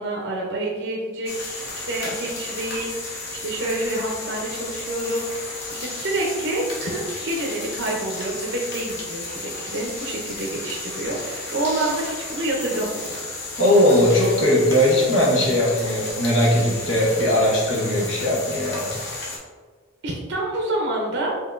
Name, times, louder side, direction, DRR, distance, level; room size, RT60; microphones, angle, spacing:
voice 1, 0.0-13.2 20.0-21.4, right 1 dB, 65° right, -2 dB, 0.6 m, -28 dB
sound 1, 1.3-19.4, left 2 dB, 55° left, 0.9 m, -33 dB
voice 2, 13.6-18.9, left 1 dB, 75° left, -5 dB, 1.3 m, -19 dB
5.5 x 2.8 x 2.4 m, 1.5 s
head